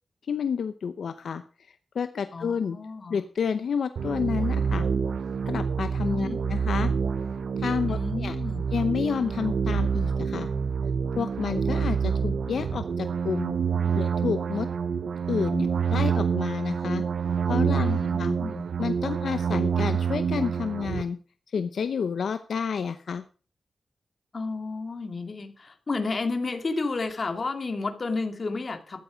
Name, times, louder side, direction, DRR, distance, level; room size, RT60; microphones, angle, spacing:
voice 1, 0.2-1.4 1.9-2.8 3.1-4.9 5.5-6.9 7.6-8.4 8.7-10.5 11.2-13.6 13.9-14.7 15.3-17.0 17.5-18.4 18.8-21.2 21.5-23.2, left 6 dB, 85° left, 11 dB, 0.7 m, -30 dB
voice 2, 2.3-3.2 6.0-6.4 7.9-8.6 17.8-18.6 24.3-29.0, left 3 dB, 45° left, 6 dB, 2.4 m, -32 dB
sound 1, 4.0-21.0, right 6 dB, 85° right, 0.7 m, -27 dB
13.5 x 10.5 x 5.1 m, 0.38 s
wide cardioid pair, 105°, 0 cm